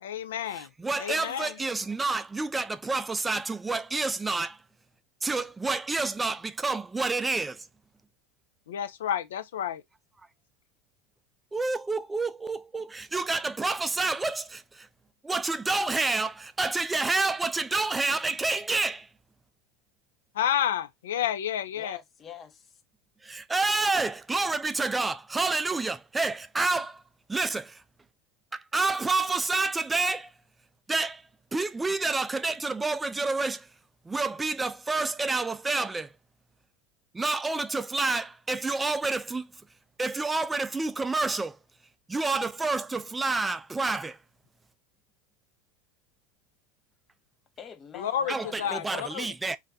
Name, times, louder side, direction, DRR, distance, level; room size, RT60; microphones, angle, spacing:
voice 1, 0.0-0.7 1.0-1.6 8.7-9.8 20.4-22.0 47.9-49.3, left 10 dB, 80° left, 0.3 m, -30 dB
voice 2, 0.5-4.6 5.2-7.6 11.5-14.9 15.2-19.1 23.2-27.0 27.3-27.8 28.5-30.3 30.9-31.2 31.5-33.7 34.1-36.1 37.1-39.5 40.0-41.6 42.1-44.2 48.3-49.6, right 3 dB, 15° right, 0.3 m, -28 dB
voice 3, 21.7-22.8 47.6-48.6 48.9-49.1 49.5-49.6, left 7 dB, 35° left, 0.6 m, -45 dB
2.4 x 2.2 x 3.8 m
hypercardioid pair, 90°, 0 cm